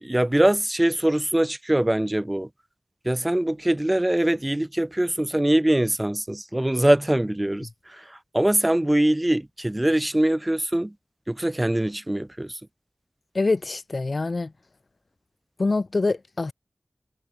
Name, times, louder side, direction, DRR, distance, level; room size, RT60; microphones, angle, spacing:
voice 1, 0.0-2.5 3.0-7.7 8.0-8.1 8.3-10.9 11.3-12.5, right 1 dB, 20° right, 0.6 m, -22 dB
voice 2, 13.3-14.5 15.6-16.5, left 3 dB, 65° left, 0.6 m, -25 dB
cardioid pair, 40°, 0 cm